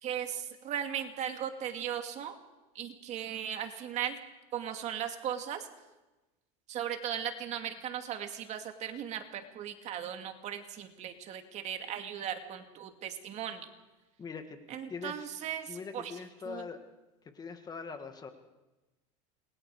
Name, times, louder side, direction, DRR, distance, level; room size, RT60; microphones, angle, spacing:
voice 1, 0.0-2.4 2.7-4.2 4.5-5.7 6.7-13.7 14.7-16.1 16.5-16.7, right 9 dB, 40° right, 6 dB, 2.3 m, -37 dB
voice 2, 14.2-14.6 14.9-15.3 15.7-16.8 17.3-18.3, left 5 dB, 20° left, 7 dB, 1.9 m, -42 dB
27.5 x 22.0 x 4.9 m, 1.1 s
supercardioid pair, 135°, 18 cm